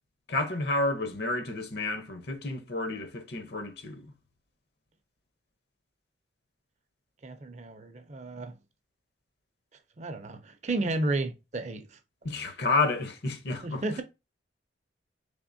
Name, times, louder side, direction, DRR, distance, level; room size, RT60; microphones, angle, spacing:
voice 1, 0.3-4.1 12.2-13.8, left 2 dB, 60° left, 0.7 m, -30 dB
voice 2, 7.2-8.6 10.0-11.9 13.6-14.0, right 2 dB, 35° right, 0.5 m, -32 dB
3.7 x 3.5 x 2.6 m
head